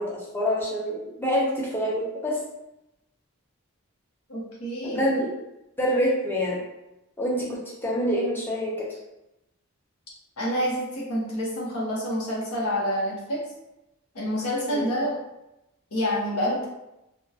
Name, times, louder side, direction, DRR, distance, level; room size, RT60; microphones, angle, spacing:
voice 1, 0.0-2.4 4.8-5.3 5.8-6.6 7.2-9.0 14.7-14.9, equal, 10° left, -4 dB, 0.5 m, -26 dB
voice 2, 4.3-5.0 10.4-13.4 14.1-15.1 15.9-16.7, equal, 85° left, -5 dB, 0.9 m, -27 dB
2.7 x 2.2 x 2.3 m, 0.91 s
head